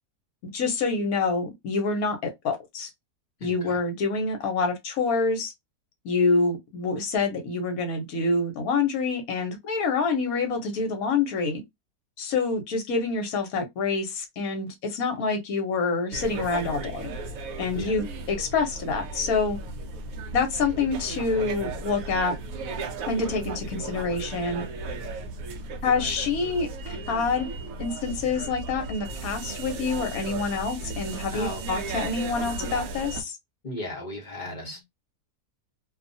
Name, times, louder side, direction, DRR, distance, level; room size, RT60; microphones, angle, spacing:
voice 1, 0.5-2.2 2.4-2.9 3.4-5.5 6.0-11.6 12.2-17.1 17.6-19.6 20.3-22.3 23.1-24.6 25.8-27.5 27.8-33.4, left 4 dB, 70° left, 1.3 m, -27 dB
voice 2, 3.4-3.8 17.7-17.9 31.3-31.6 33.6-34.8, left 1 dB, 35° left, 0.9 m, -36 dB
sound 1, 16.1-33.2, right 3 dB, 70° right, 1.0 m, -35 dB
2.7 x 2.3 x 2.6 m
omnidirectional pair, 1.6 m